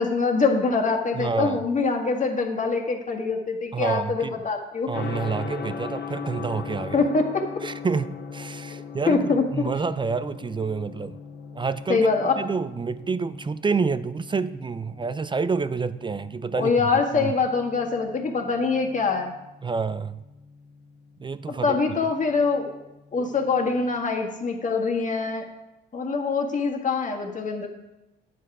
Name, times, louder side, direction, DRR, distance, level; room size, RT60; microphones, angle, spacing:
voice 1, 0.0-4.9 6.9-7.4 9.1-9.7 11.9-12.3 16.6-19.3 21.5-22.8 23.1-25.5 25.9-27.7, left 4 dB, 40° left, 3 dB, 1.8 m, -24 dB
voice 2, 1.2-1.6 3.7-4.4 4.9-7.1 7.6-8.1 8.3-11.2 11.5-12.1 12.4-16.7 17.1-17.3 19.6-20.2 21.2-21.8, right 5 dB, 25° right, 15 dB, 0.4 m, -28 dB
Gong, 4.9-23.9, left 5 dB, 60° left, 1.4 m, -40 dB
9.3 x 7.5 x 4.8 m, 0.97 s
cardioid pair, 90°, 20 cm